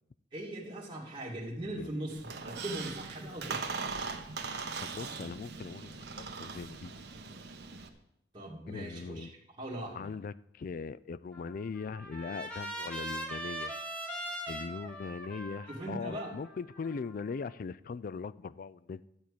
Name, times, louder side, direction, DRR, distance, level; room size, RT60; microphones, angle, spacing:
voice 1, 0.3-3.8 8.3-9.3 9.6-10.1 15.7-16.3, right 1 dB, 25° right, 2.2 m, -40 dB
Squeak, 2.1-7.9, right 4 dB, 65° right, 1.1 m, -40 dB
voice 2, 4.8-6.0 6.4-6.9 8.7-9.3 9.9-13.7 14.5-19.0, left 5 dB, 50° left, 0.3 m, -40 dB
Trumpet, 11.3-17.5, right 1 dB, 5° left, 1.7 m, -41 dB
12.5 x 4.6 x 8.4 m
head